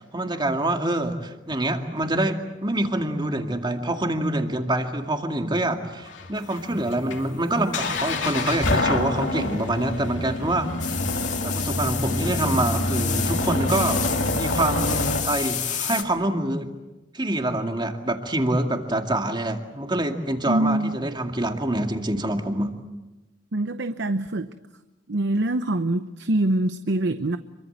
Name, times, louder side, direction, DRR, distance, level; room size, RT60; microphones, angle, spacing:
voice 1, 0.0-11.0 11.4-14.1 14.3-16.7 17.1-22.7, right 1 dB, 25° right, 5 dB, 2.2 m, -26 dB
sound 1, 6.1-15.2, left 2 dB, 75° left, 3.0 m, -27 dB
sound 2, 10.8-16.0, left 9 dB, 40° left, 2.1 m, -30 dB
voice 2, 20.5-21.0 23.5-24.5 25.1-27.4, right 1 dB, 65° right, 11 dB, 0.8 m, -24 dB
26.5 x 23.5 x 8.0 m, 1.1 s
head